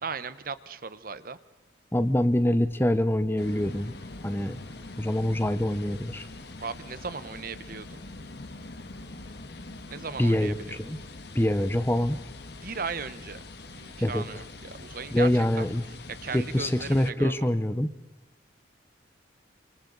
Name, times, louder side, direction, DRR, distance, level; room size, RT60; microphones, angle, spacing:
voice 1, 0.0-1.4 6.6-8.0 9.9-10.8 12.6-13.4 13.8-15.3 15.6-15.7 16.2-17.5, right 5 dB, 50° right, 14 dB, 0.9 m, -37 dB
voice 2, 1.9-3.9 4.2-4.6 5.0-6.3 10.2-11.0 11.3-12.2 14.0-14.2 15.1-15.8 16.3-17.9, left 1 dB, 10° left, 12 dB, 0.8 m, -25 dB
sound 1, 3.4-17.1, left 2 dB, 60° left, 1.5 m, -43 dB
28.5 x 26.5 x 4.0 m, 1.0 s
head